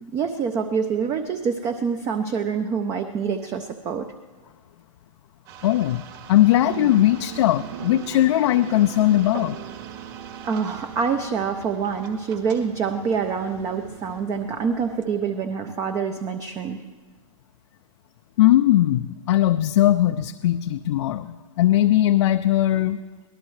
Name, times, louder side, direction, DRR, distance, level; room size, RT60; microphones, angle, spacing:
voice 1, 0.0-4.1 10.4-16.8, right 6 dB, 20° right, 7 dB, 0.6 m, -26 dB
sound 1, 5.5-14.2, right 8 dB, 40° right, 1.8 m, -45 dB
voice 2, 5.6-6.0 6.3-9.6 18.4-23.0, left 13 dB, 55° left, 8 dB, 0.5 m, -19 dB
sound 2, 6.6-15.1, right 10 dB, 60° right, 0.9 m, -39 dB
24.0 x 18.0 x 3.2 m, 1.5 s
hypercardioid pair, 150°, 18 cm